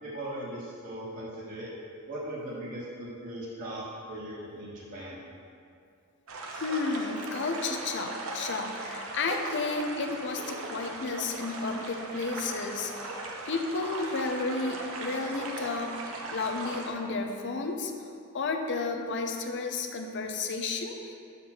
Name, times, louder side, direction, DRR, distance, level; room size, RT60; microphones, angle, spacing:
voice 1, 0.0-1.7 2.1-5.2, right 1 dB, 40° right, -8 dB, 1.1 m, -39 dB
sound 1, 6.3-16.9, right 2 dB, 70° right, 0.8 m, -38 dB
voice 2, 6.5-13.1 13.5-16.0 16.3-17.9 18.3-21.1, left 3 dB, 55° left, 4 dB, 0.6 m, -32 dB
6.8 x 4.1 x 5.9 m, 2.5 s
head